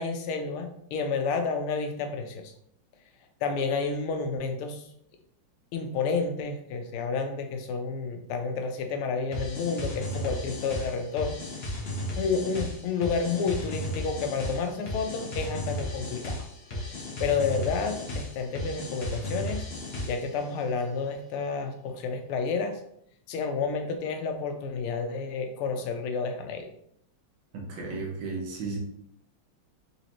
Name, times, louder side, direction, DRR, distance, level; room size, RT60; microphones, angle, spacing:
voice 1, 0.0-2.5 3.4-4.8 5.7-11.4 12.2-16.4 17.2-19.6 20.1-22.8 23.3-26.7, left 5 dB, 85° left, 6 dB, 1.5 m, -30 dB
sound 1, 9.3-20.4, left 1 dB, 50° left, 0.7 m, -35 dB
voice 2, 27.5-28.8, right 3 dB, 65° right, -1 dB, 1.6 m, -34 dB
4.0 x 3.4 x 2.9 m, 0.69 s
omnidirectional pair, 2.4 m